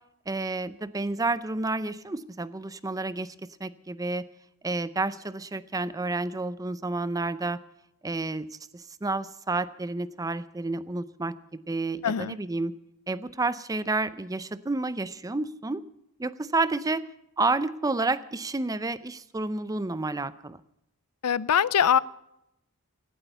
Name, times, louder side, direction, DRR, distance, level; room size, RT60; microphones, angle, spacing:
voice 1, 0.3-3.3 3.6-4.3 4.6-7.6 8.0-12.7 13.1-15.8 16.2-17.1 17.4-20.6, right 3 dB, 15° right, 15 dB, 0.5 m, -30 dB
voice 2, 12.0-12.4 21.2-22.0, left 8 dB, 85° left, 20 dB, 0.5 m, -22 dB
17.0 x 12.5 x 5.6 m, 0.83 s
head